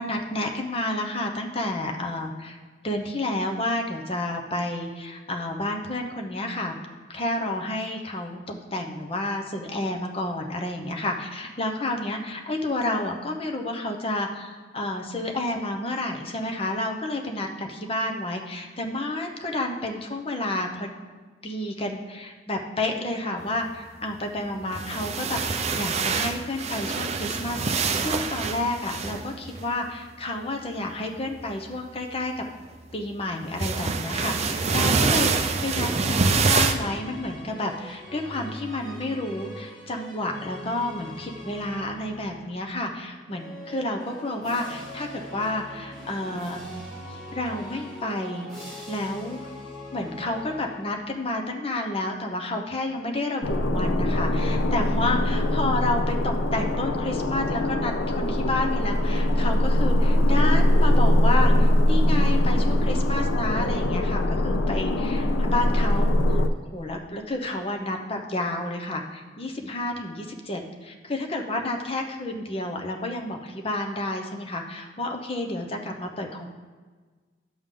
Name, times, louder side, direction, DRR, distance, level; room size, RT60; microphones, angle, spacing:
voice 1, 0.0-2.6 2.8-6.7 7.1-20.9 21.4-32.4 32.9-46.7 47.1-48.5 48.9-49.5 49.9-76.6, left 2 dB, 30° left, 2 dB, 0.8 m, -30 dB
sound 1, 24.6-29.6 31.4-31.7 33.6-36.7, right 4 dB, 35° right, 0.5 m, -25 dB
sound 2, 34.8-42.6 43.2-51.2, equal, ahead, 2.0 m, -42 dB
sound 3, 53.4-66.5, left 1 dB, 75° left, 0.5 m, -22 dB
10.5 x 6.7 x 3.8 m, 1.4 s
head